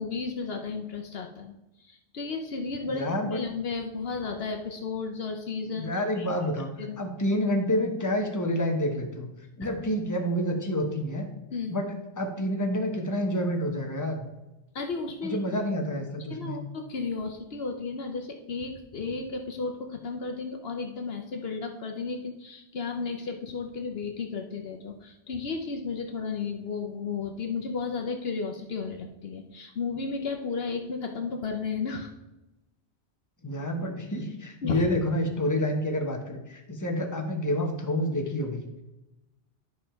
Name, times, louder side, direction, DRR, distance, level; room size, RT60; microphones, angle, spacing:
voice 1, 0.0-1.5 1.8-5.9 6.2-6.3 6.9-7.0 9.6-9.7 11.5-11.8 14.7-15.4 16.3-32.1 34.6-34.9, left 4 dB, 65° left, 4 dB, 1.0 m, -33 dB
voice 2, 2.9-3.4 5.8-9.3 9.6-11.3 11.7-14.2 15.2-16.6 33.4-38.8, equal, 15° left, 2 dB, 1.1 m, -28 dB
11.0 x 5.2 x 4.5 m, 0.96 s
omnidirectional pair, 1.2 m